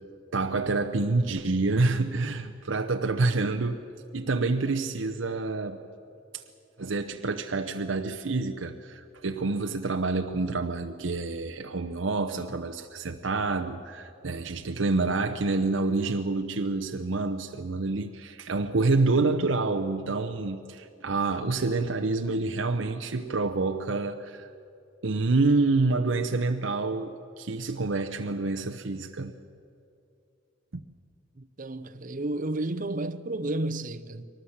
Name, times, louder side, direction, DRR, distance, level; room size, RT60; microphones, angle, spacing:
voice 1, 0.3-3.9 4.1-5.9 6.3-6.4 6.8-24.5 25.0-29.3, right 3 dB, 75° right, 0.8 m, -27 dB
voice 2, 31.4-34.3, right 2 dB, 45° right, 0.8 m, -32 dB
23.0 x 19.0 x 7.3 m
head